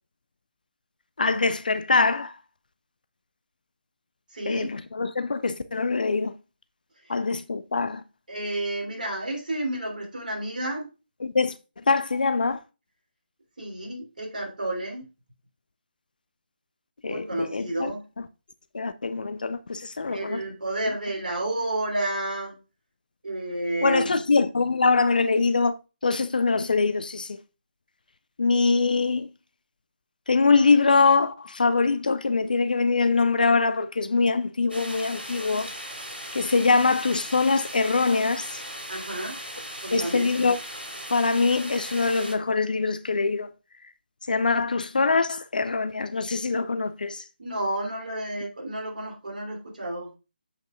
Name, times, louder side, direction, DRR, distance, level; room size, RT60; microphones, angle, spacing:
voice 1, 1.2-2.3 4.5-6.3 7.1-8.0 11.2-11.6 11.9-12.6 17.0-17.9 18.7-20.4 23.8-25.7 26.0-27.4 28.4-29.3 30.3-35.7 36.3-38.6 39.9-40.6 41.1-43.5 44.3-47.2, left 4 dB, 55° left, 0.4 m, -23 dB
voice 2, 4.3-4.7 7.0-7.1 8.3-10.9 13.6-15.1 17.0-18.1 20.1-22.6 23.2-24.2 38.9-39.4 39.8-40.3 47.4-50.1, right 1 dB, 55° right, 3.1 m, -31 dB
sound 1, 34.7-42.3, right 1 dB, 85° right, 3.2 m, -38 dB
7.6 x 5.3 x 2.5 m
figure-of-eight pair, 150°, 5 cm